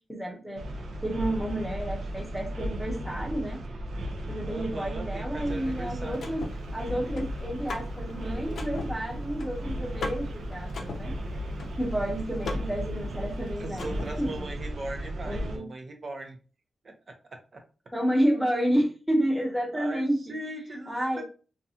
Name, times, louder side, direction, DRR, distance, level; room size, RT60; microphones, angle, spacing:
voice 1, 0.1-0.6 1.0-3.6 4.3-6.4 6.7-11.1 11.8-14.5 15.2-15.7 17.9-20.2 20.9-21.2, equal, ahead, -1 dB, 0.8 m, -30 dB
sound 1, 0.6-15.6, right 1 dB, 90° right, 0.5 m, -35 dB
voice 2, 4.5-6.3 13.6-16.4 16.8-17.6 19.7-21.2, right 2 dB, 45° right, 3 dB, 0.6 m, -39 dB
Car / Mechanisms, 5.5-14.4, left 3 dB, 80° left, 0.5 m, -42 dB
2.5 x 2.3 x 2.7 m, 0.35 s
wide cardioid pair, 125°, 0 cm